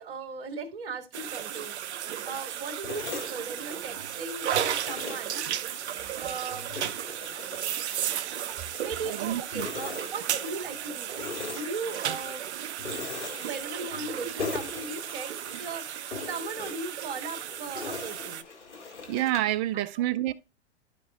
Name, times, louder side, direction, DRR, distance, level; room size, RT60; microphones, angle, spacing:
voice 1, 0.0-1.8 2.2-5.4 6.2-6.7 8.6-12.5 13.3-18.4 19.7-19.8, right 4 dB, 55° right, 2.2 m, -38 dB
sound 1, 1.1-18.4, right 10 dB, 70° right, 0.7 m, -35 dB
sound 2, 2.8-4.1 4.5-6.1 6.5-9.2 9.5-10.8 11.1-12.4 12.8-14.1 14.4-15.7 16.1-19.6, left 4 dB, 90° left, 2.1 m, -40 dB
voice 2, 9.1-9.7 14.2-14.3 19.1-20.3, right 14 dB, 25° right, 0.4 m, -28 dB
13.0 x 5.3 x 2.4 m
hypercardioid pair, 115°, 34 cm